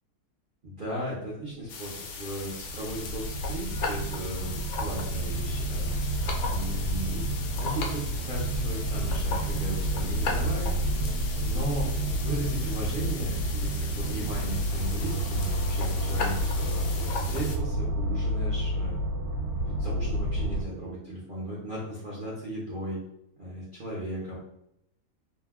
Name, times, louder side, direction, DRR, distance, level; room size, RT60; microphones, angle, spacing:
voice 1, 0.6-6.2 6.5-7.3 7.5-10.7 11.4-19.0 19.6-23.0 23.4-24.4, right 1 dB, 45° right, -8 dB, 0.7 m, -36 dB
sound 1, 1.7-17.6, left 4 dB, 70° left, 1.0 m, -38 dB
sound 2, 1.9-20.6, right 1 dB, 70° right, 1.1 m, -30 dB
2.7 x 2.2 x 3.5 m, 0.80 s
omnidirectional pair, 1.7 m